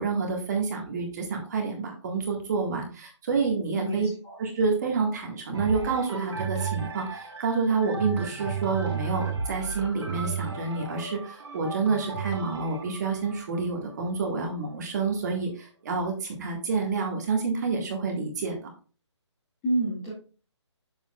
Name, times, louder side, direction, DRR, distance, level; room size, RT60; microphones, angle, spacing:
voice 1, 0.0-4.1 4.4-18.6, right 4 dB, 35° right, 1 dB, 1.7 m, -28 dB
voice 2, 3.7-4.4 19.6-20.1, right 1 dB, 15° left, -7 dB, 2.1 m, -29 dB
sound 1, 5.5-15.3 16.0-16.1, right 5 dB, 70° right, 2.5 m, -34 dB
7.9 x 7.1 x 2.4 m, 0.37 s
hypercardioid pair, 165°, 15 cm